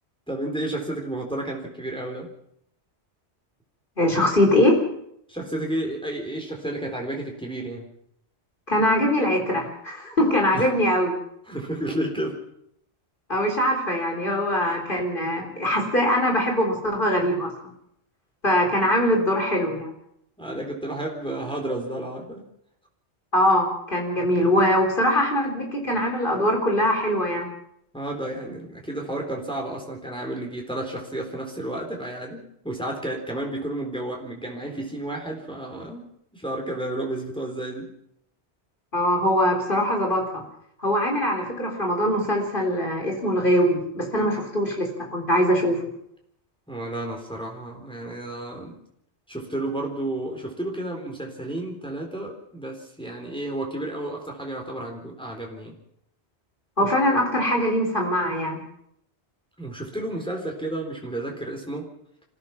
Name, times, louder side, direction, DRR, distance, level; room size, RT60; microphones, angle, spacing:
voice 1, 0.3-2.3 5.3-7.8 10.5-10.7 11.5-12.4 14.6-14.8 20.4-22.4 27.9-36.0 36.3-37.9 46.7-48.8 49.3-55.7 56.8-56.9 59.6-61.9, right 1 dB, 5° left, 0 dB, 3.9 m, -31 dB
voice 2, 4.0-4.8 8.7-11.1 13.3-17.5 18.4-19.9 23.3-27.5 38.9-40.4 40.8-45.8 56.8-58.6, equal, 50° left, 1 dB, 4.2 m, -22 dB
27.0 x 16.5 x 5.9 m, 0.74 s
omnidirectional pair, 1.2 m